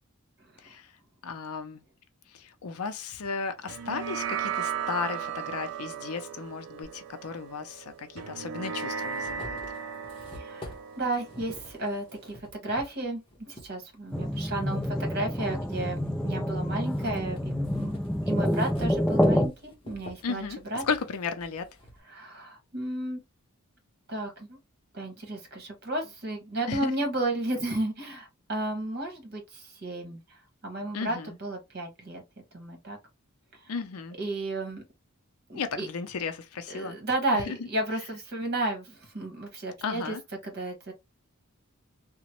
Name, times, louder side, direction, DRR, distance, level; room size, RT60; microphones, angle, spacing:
voice 1, 1.2-1.8 2.3-9.6 20.2-20.6 20.8-21.7 26.7-26.9 30.9-31.4 33.7-34.2 35.5-37.0 37.3-37.6 39.8-40.2, left 5 dB, 85° left, 0.5 m, -34 dB
sound 1, 3.7-12.4, right 7 dB, 70° right, 0.4 m, -36 dB
sound 2, 6.8-6.9 8.0-8.1 8.6-13.7 14.2-15.4 15.9-22.0, left 1 dB, 25° left, 0.8 m, -47 dB
voice 2, 10.3-17.9 18.2-20.4 20.7-20.8 22.1-23.2 24.1-24.6 24.9-30.2 30.6-32.2 32.5-33.0 33.6-33.7 34.2-34.8 35.5-35.9 36.7-40.2 40.4-40.9, right 2 dB, 50° right, 1.2 m, -33 dB
sound 3, 14.1-19.5, equal, 5° left, 0.3 m, -27 dB
2.9 x 2.1 x 2.9 m
head